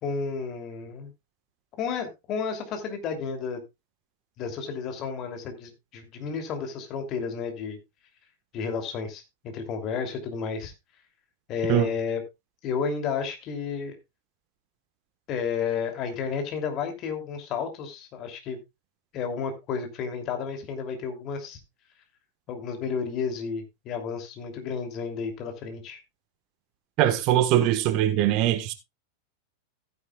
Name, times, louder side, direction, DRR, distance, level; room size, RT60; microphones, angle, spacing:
voice 1, 0.0-1.1 1.8-3.6 4.4-7.8 8.5-10.7 11.5-12.2 12.6-14.0 15.3-18.6 19.1-21.6 22.5-26.0, left 6 dB, 35° left, 2.8 m, -32 dB
voice 2, 27.0-28.7, right 12 dB, 40° right, 1.3 m, -22 dB
15.5 x 9.5 x 2.4 m
figure-of-eight pair, 90°, 0 cm